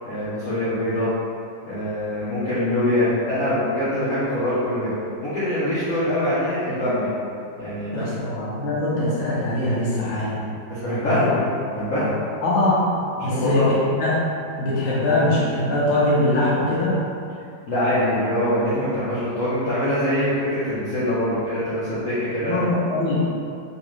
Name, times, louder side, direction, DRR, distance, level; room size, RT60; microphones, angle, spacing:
voice 1, 0.0-1.1 1.6-4.9 5.2-7.1 7.6-8.1 10.7-11.5 11.7-12.1 13.2-13.7 17.7-22.6, left 1 dB, 50° left, -13 dB, 1.0 m, -23 dB
voice 2, 7.9-10.4 11.1-11.3 12.4-12.9 13.2-14.2 14.6-17.0 22.4-23.2, left 1 dB, 85° left, -7 dB, 1.7 m, -22 dB
4.0 x 2.9 x 3.1 m, 2.6 s
omnidirectional pair, 2.1 m